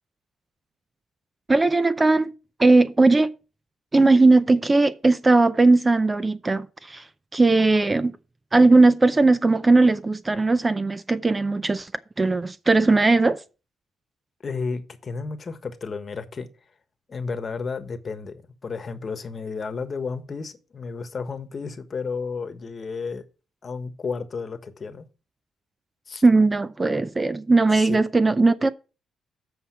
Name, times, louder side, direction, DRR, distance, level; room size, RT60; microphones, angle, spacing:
voice 1, 1.5-2.3 2.6-3.3 3.9-7.0 7.3-8.1 8.5-11.9 12.2-13.4 26.2-28.7, right 3 dB, 20° right, 0.5 m, -18 dB
voice 2, 14.4-16.5 17.1-23.2 23.6-25.1 26.1-26.2 27.7-28.0, left 4 dB, 40° left, 1.2 m, -32 dB
7.8 x 5.6 x 5.7 m
cardioid pair, 90°, 0 cm